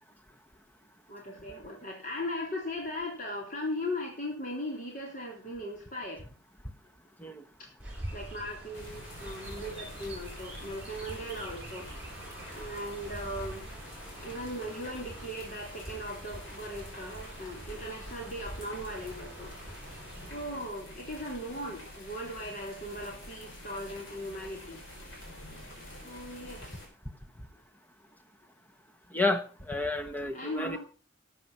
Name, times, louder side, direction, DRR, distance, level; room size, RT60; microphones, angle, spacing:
voice 1, 1.1-6.2 7.6-7.7 8.1-11.9 12.5-13.7 14.2-19.5 20.3-24.8 26.0-26.8 30.3-30.8, left 1 dB, 40° left, -1 dB, 3.6 m, -38 dB
Chirp tweet, 7.8-20.4, right 1 dB, 5° right, 5.4 m, -45 dB
sound 1, 8.7-26.9, left 1 dB, 75° left, 5.4 m, -48 dB
voice 2, 29.1-30.8, left 2 dB, 10° left, 8 dB, 1.0 m, -31 dB
12.5 x 8.4 x 5.6 m, 0.37 s
head